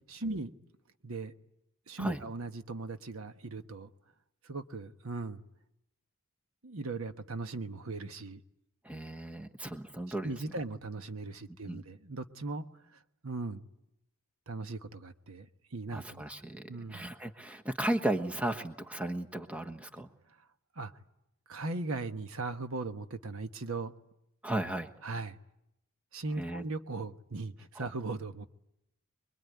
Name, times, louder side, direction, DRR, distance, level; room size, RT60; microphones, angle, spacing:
voice 1, 0.1-0.5 1.0-1.3 1.9-3.9 4.4-5.4 6.6-8.4 10.2-12.7 12.9-13.6 14.5-16.2 16.7-17.0 20.7-20.9 21.5-23.9 25.0-25.4 26.1-28.5, right 3 dB, 70° right, 1.2 m, -38 dB
voice 2, 8.8-10.3 11.7-11.8 15.9-20.1 24.4-24.9 26.4-26.6 27.7-27.9, right 1 dB, 5° right, 1.3 m, -35 dB
25.5 x 23.0 x 9.4 m
head